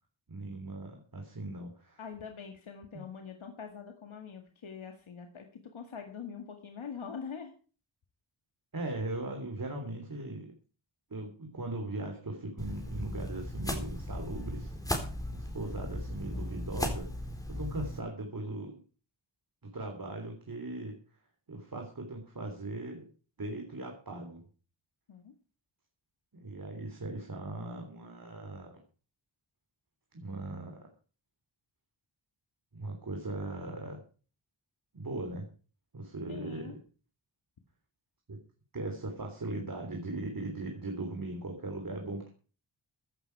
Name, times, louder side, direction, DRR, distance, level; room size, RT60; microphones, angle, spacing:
voice 1, 0.3-2.0 2.9-3.0 8.7-10.5 11.1-14.7 15.0-18.8 19.6-21.0 21.5-23.1 23.4-24.5 26.3-28.8 30.1-30.9 32.7-34.0 34.9-35.5 35.9-36.8 38.3-38.4 38.7-42.3, right 2 dB, 45° right, 3 dB, 3.4 m, -39 dB
voice 2, 2.0-7.5 25.1-25.3 36.3-36.8, left 6 dB, 80° left, 5 dB, 2.1 m, -44 dB
sound 1, 12.6-18.0, left 1 dB, 5° left, 4.0 m, -37 dB
15.5 x 12.0 x 4.8 m, 0.38 s
wide cardioid pair, 95°, 47 cm